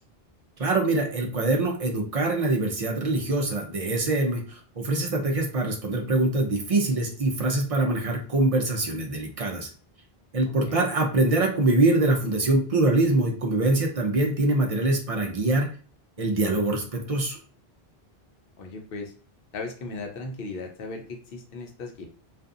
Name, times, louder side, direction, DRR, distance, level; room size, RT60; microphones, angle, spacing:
voice 1, 0.6-9.7 10.3-15.7 16.2-17.4, right 2 dB, 45° right, 1 dB, 0.5 m, -24 dB
voice 2, 18.6-19.1 19.5-22.1, left 3 dB, 65° left, 3 dB, 0.8 m, -37 dB
2.6 x 2.3 x 2.4 m, 0.40 s
omnidirectional pair, 1.1 m